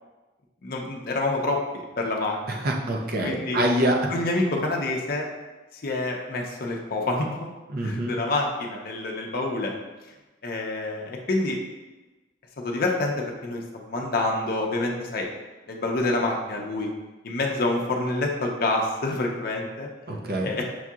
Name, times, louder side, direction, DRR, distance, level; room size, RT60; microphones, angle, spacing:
voice 1, 0.6-2.7 3.2-3.6 4.1-5.3 5.7-7.3 7.8-9.7 10.4-11.6 12.6-15.3 15.7-16.9 17.2-19.9 20.4-20.6, left 2 dB, 55° left, 0 dB, 0.6 m, -27 dB
voice 2, 2.5-4.0 7.7-8.2 20.1-20.5, right 1 dB, 55° right, 0 dB, 0.6 m, -25 dB
6.1 x 2.8 x 2.4 m, 1.2 s
head